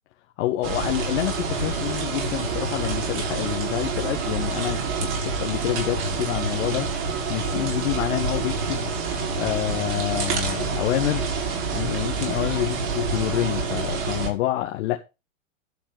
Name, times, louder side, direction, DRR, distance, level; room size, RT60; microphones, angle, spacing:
voice 1, 0.4-6.9 7.3-8.9 9.4-11.3 11.7-15.0, left 15 dB, 60° left, 1.4 m, -27 dB
sound 1, 0.6-14.3, right 4 dB, 55° right, 5.3 m, -27 dB
12.0 x 4.4 x 7.4 m
hypercardioid pair, 120°, 39 cm